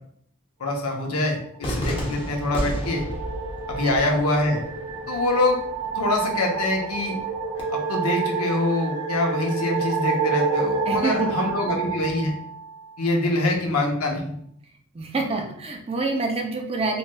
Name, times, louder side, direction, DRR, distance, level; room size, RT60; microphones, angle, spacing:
voice 1, 0.6-3.0 3.7-4.6 5.1-5.6 5.9-7.2 7.7-12.3 13.0-14.3, left 2 dB, 80° left, 1 dB, 0.7 m, -24 dB
Cheering / Fireworks, 1.6-7.6, equal, 25° left, 0.7 m, -34 dB
sound 1, 1.7-13.1, right 5 dB, 85° right, 0.5 m, -29 dB
sound 2, 7.5-12.4, right 2 dB, 65° right, 1.0 m, -42 dB
voice 2, 10.9-11.5 14.9-17.0, right 3 dB, 25° right, 3 dB, 0.4 m, -27 dB
3.0 x 3.0 x 2.2 m, 0.68 s
head